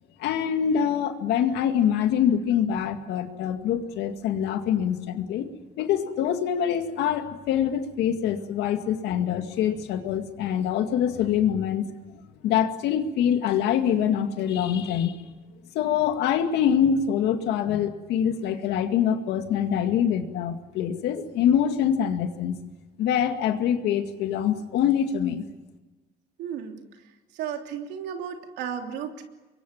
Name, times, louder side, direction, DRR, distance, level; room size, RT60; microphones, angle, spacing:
voice 1, 0.2-5.5 5.8-11.9 12.4-15.1 15.7-22.6 23.0-25.4, left 9 dB, 80° left, 6 dB, 2.2 m, -24 dB
voice 2, 26.4-26.8 27.3-29.2, right 8 dB, 85° right, 4 dB, 3.0 m, -34 dB
26.5 x 22.5 x 7.3 m, 1.2 s
cardioid pair, 110°, 17 cm